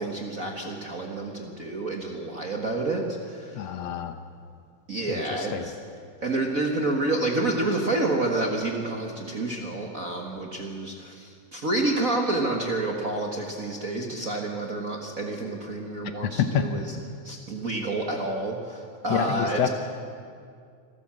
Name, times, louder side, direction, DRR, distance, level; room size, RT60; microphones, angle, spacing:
voice 1, 0.0-3.7 4.9-5.7 6.2-17.0 17.2-19.7, right 2 dB, 40° right, 1 dB, 1.4 m, -29 dB
voice 2, 3.6-4.1 5.1-5.7 16.4-16.7 19.1-19.7, left 9 dB, 70° left, 8 dB, 1.9 m, -27 dB
26.0 x 13.5 x 7.5 m, 2.2 s
omnidirectional pair, 3.3 m